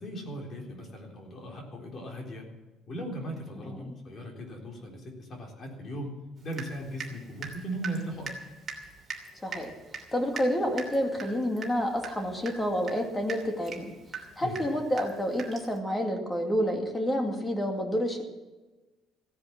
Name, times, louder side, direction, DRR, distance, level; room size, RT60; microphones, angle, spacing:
voice 1, 0.0-2.4 2.9-6.1 6.4-8.3 14.4-14.7, right 1 dB, 35° left, 1 dB, 3.8 m, -38 dB
Water tap faucet / Drip, 6.5-7.2 7.4-15.8, right 4 dB, 25° right, 2.9 m, -41 dB
voice 2, 10.1-13.9 14.4-18.2, equal, 10° left, 3 dB, 2.3 m, -29 dB
16.0 x 10.5 x 7.4 m, 1.2 s
cardioid pair, 155°, 0 cm